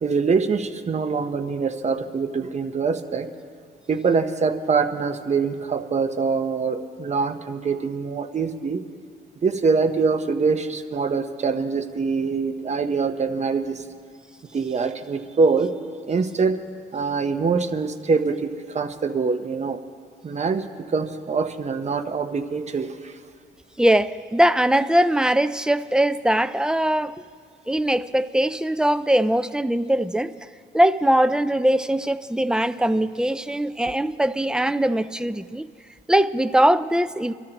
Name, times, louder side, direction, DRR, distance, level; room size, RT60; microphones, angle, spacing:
voice 1, 0.0-3.3 3.9-8.8 9.4-13.8 14.5-15.7 16.1-16.6 16.9-19.8 20.2-20.6 20.9-22.9, right 5 dB, 35° right, 0.9 m, -24 dB
voice 2, 23.8-27.2 27.7-30.3 30.7-35.7 36.1-37.3, right 1 dB, 5° right, 0.4 m, -21 dB
24.0 x 13.0 x 3.0 m
cardioid pair, 90°, 20 cm